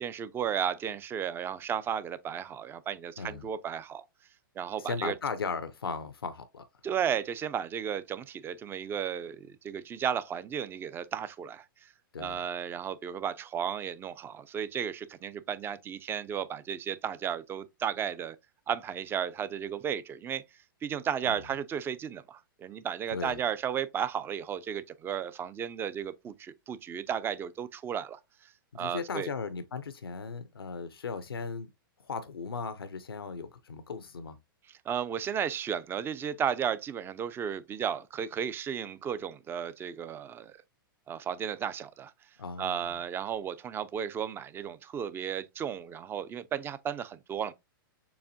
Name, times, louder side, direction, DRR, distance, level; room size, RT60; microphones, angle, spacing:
voice 1, 0.0-4.0 4.6-5.1 6.8-11.9 12.2-18.4 18.7-20.4 20.8-29.3 34.9-40.6 41.1-42.1 42.6-47.5, right 8 dB, 20° right, 0.4 m, -34 dB
voice 2, 4.8-6.6 12.1-12.4 21.2-21.4 23.1-23.4 28.7-31.7 32.0-34.4 42.4-43.0, left 5 dB, 90° left, 0.6 m, -37 dB
6.9 x 2.7 x 2.6 m
hypercardioid pair, 115°, 12 cm